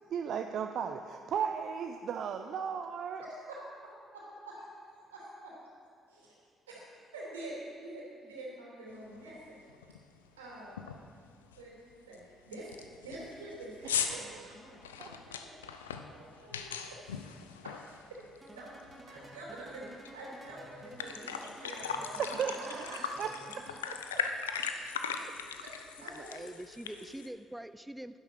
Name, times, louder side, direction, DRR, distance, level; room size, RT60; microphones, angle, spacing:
voice 1, 0.1-3.2 14.1-14.4 15.0-15.1 22.0-24.3 25.2-25.3, right 7 dB, 60° right, 6 dB, 0.5 m, -36 dB
voice 2, 3.2-3.6 4.4-4.7 5.1-5.5 6.1-6.3 6.7-9.6 10.4-10.9 11.6-15.6 16.0-17.2 17.5-17.8 18.1-18.2 18.5-18.7 19.1-19.9 20.1-23.1 25.1-26.4 26.9-27.0, right 1 dB, 90° right, -4 dB, 3.0 m, -47 dB
sound 1, 9.1-9.2 9.7-10.0 10.3-10.4 10.8-11.1 11.5-11.6 12.1-12.2 12.5-18.5 18.8-20.1 20.5-20.6 20.8-27.3, left 7 dB, 90° left, 0.5 m, -39 dB
sound 2, 18.4-24.0, right 1 dB, 25° right, 2.3 m, -52 dB
voice 3, 26.0-28.2, right 1 dB, 5° right, 12 dB, 0.4 m, -44 dB
11.0 x 10.5 x 6.3 m, 2.3 s
hypercardioid pair, 50°, 0 cm